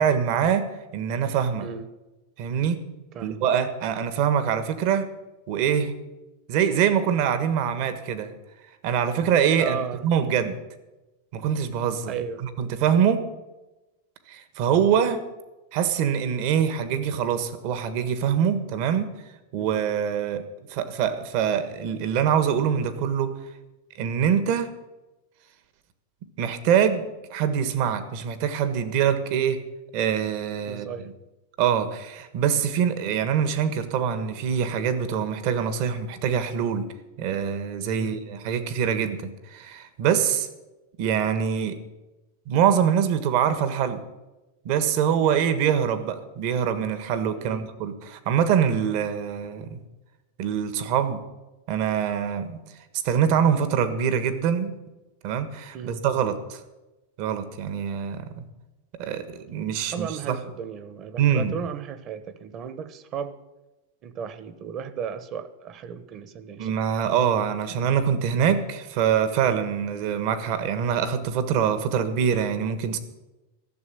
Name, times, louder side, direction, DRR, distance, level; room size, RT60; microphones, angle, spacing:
voice 1, 0.0-1.7 2.4-2.8 3.2-5.1 5.5-5.9 6.5-8.3 8.8-10.6 11.3-12.1 12.6-13.2 14.3-15.2 15.7-19.1 19.5-20.4 20.7-23.3 24.0-24.7 26.4-29.6 29.9-30.9 31.6-36.8 37.2-40.5 41.0-41.8 42.5-44.0 44.6-49.8 50.4-51.2 51.7-52.6 53.0-54.7 55.2-56.6 57.2-58.4 59.0-60.4 61.2-61.5 66.6-73.0, right 8 dB, 55° right, 11 dB, 1.5 m, -24 dB
voice 2, 9.6-10.1 12.1-12.5 19.6-19.8 30.7-31.1 37.9-38.2 47.3-47.7 55.7-56.0 59.8-63.4 64.0-66.7, right 7 dB, 35° right, 14 dB, 1.1 m, -35 dB
14.0 x 6.9 x 9.7 m, 1.0 s
supercardioid pair, 135°, 0 cm